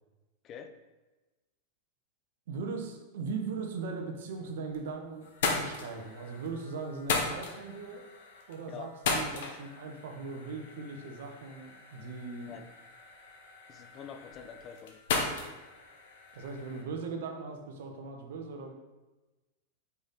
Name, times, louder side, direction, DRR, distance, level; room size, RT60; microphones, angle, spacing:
voice 1, 2.5-8.0 8.5-12.5 16.3-18.7, right 4 dB, 55° right, 4 dB, 0.9 m, -39 dB
sound 1, 4.4-4.9 5.2-16.8, left 4 dB, 55° left, 1.1 m, -37 dB
voice 2, 13.7-15.0, left 7 dB, 30° left, 7 dB, 0.6 m, -46 dB
5.5 x 5.0 x 4.0 m, 1.1 s
figure-of-eight pair, 90°, 0 cm